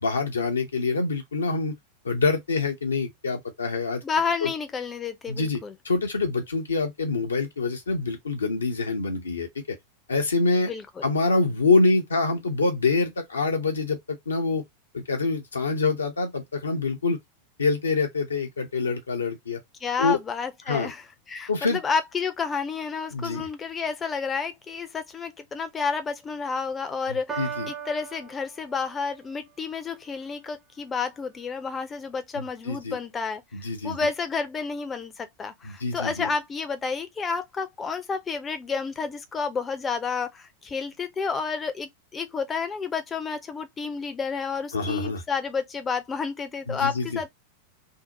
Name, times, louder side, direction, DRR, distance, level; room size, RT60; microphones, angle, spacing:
voice 1, 0.0-1.7 2.0-4.0 4.4-4.5 5.3-5.6 5.8-9.8 10.1-10.7 11.0-14.6 14.9-17.2 17.6-19.6 20.0-20.2 20.7-20.9 21.5-21.8 23.1-23.5 27.1-27.7 32.3-33.0 33.5-34.0 35.6-36.3 44.7-45.2 46.7-47.2, left 3 dB, 75° left, 0.6 m, -25 dB
voice 2, 4.0-5.7 10.5-11.1 19.8-33.4 33.8-47.3, left 5 dB, 20° left, 0.5 m, -30 dB
Piano, 27.3-29.3, right 7 dB, 20° right, 0.6 m, -37 dB
2.7 x 2.0 x 2.7 m
figure-of-eight pair, 90°, 0 cm